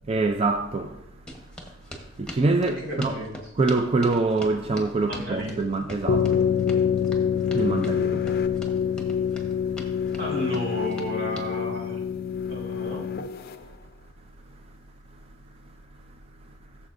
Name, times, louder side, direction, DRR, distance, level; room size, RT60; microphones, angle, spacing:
voice 1, 0.1-0.9 2.2-3.2 3.6-6.4 7.5-8.2, right 3 dB, 30° right, 0.4 m, -24 dB
sound 1, 1.3-11.5, left 1 dB, 5° left, 1.1 m, -41 dB
voice 2, 2.6-3.4 5.1-5.7 10.2-12.0 12.5-13.1, equal, 75° right, 3.6 m, -32 dB
sound 2, 6.1-13.5, left 7 dB, 50° left, 0.5 m, -26 dB
14.0 x 7.1 x 2.6 m
head